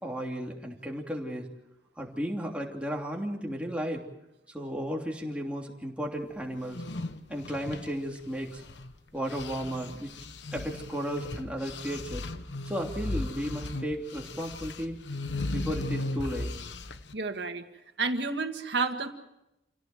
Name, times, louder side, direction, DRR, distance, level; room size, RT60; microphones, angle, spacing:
voice 1, 0.0-1.5 2.0-4.0 4.5-6.8 7.3-8.6 9.1-10.1 10.5-12.3 12.6-15.0 15.5-16.5, equal, 5° right, 0 dB, 3.1 m, -34 dB
sound 1, 6.6-8.9 9.2-17.1, left 2 dB, 85° left, 1.1 m, -37 dB
voice 2, 17.1-17.6 18.0-19.1, right 4 dB, 75° right, 6 dB, 2.0 m, -30 dB
28.0 x 17.0 x 7.8 m, 0.90 s
head